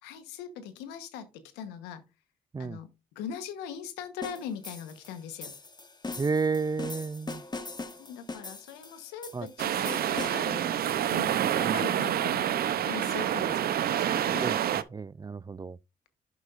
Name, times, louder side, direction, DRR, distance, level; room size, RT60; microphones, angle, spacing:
voice 1, 0.0-2.0 2.6-5.5 8.0-14.5, left 8 dB, 90° left, 1.1 m, -41 dB
sound 1, 4.2-10.6, left 3 dB, 25° left, 1.4 m, -41 dB
voice 2, 6.2-7.4 9.3-9.5 11.6-11.8 14.4-15.8, right 4 dB, 25° right, 0.4 m, -32 dB
sound 2, 9.6-14.8, right 10 dB, 65° right, 0.7 m, -27 dB
11.0 x 6.0 x 2.5 m
supercardioid pair, 50°, 17 cm